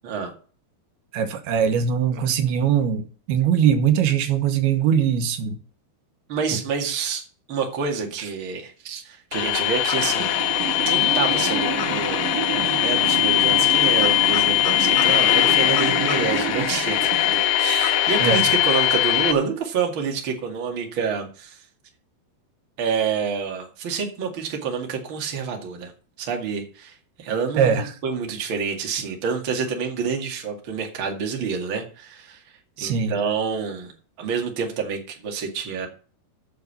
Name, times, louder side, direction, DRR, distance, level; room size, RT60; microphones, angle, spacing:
voice 1, 1.1-5.6 8.2-8.3 18.2-18.4 27.6-27.9 32.8-33.2, right 8 dB, 85° right, 3.0 m, -21 dB
voice 2, 6.3-7.2 7.5-12.3 12.5-17.1 17.6-21.6 22.8-25.9 26.2-32.4 32.8-33.9 34.2-35.9, right 6 dB, 40° right, 2.3 m, -28 dB
sound 1, 9.3-19.3, left 13 dB, 75° left, 2.9 m, -21 dB
sound 2, 10.0-17.5, right 9 dB, 65° right, 2.5 m, -30 dB
8.6 x 6.7 x 8.3 m
omnidirectional pair, 4.5 m